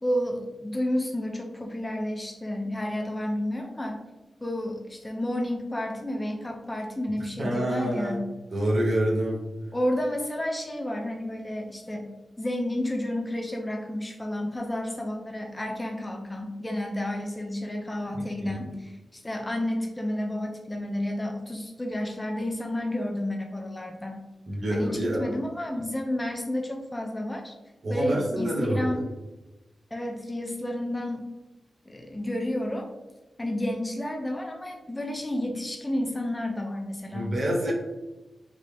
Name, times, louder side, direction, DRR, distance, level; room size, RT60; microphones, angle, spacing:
voice 1, 0.0-4.0 4.4-8.2 9.7-12.1 12.4-24.2 24.7-27.5 27.9-29.0 29.9-31.3 31.9-32.9 33.4-37.3, left 1 dB, 15° left, 2 dB, 0.5 m, -31 dB
voice 2, 7.2-8.2 8.5-9.4 18.1-18.5 24.5-25.3 27.8-29.0 37.1-37.7, right 1 dB, 45° right, -3 dB, 1.2 m, -27 dB
5.3 x 2.8 x 3.3 m, 1.1 s
wide cardioid pair, 155°, 0 cm